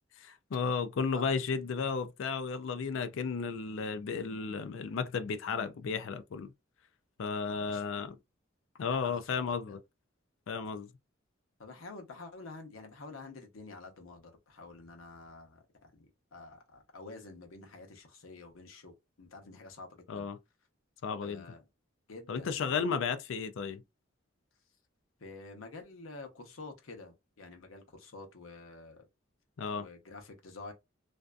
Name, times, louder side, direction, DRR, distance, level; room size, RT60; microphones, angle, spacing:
voice 1, 0.2-6.5 7.2-8.2 8.8-9.8 10.5-10.9 20.1-20.4 21.0-21.5 22.3-23.8 29.6-29.8, left 5 dB, 70° left, 0.4 m, -33 dB
voice 2, 7.5-8.0 8.8-9.8 11.6-20.3 21.2-21.6 22.1-22.8 25.2-29.0 29.8-30.7, left 3 dB, 85° left, 0.8 m, -49 dB
2.6 x 2.4 x 2.2 m
head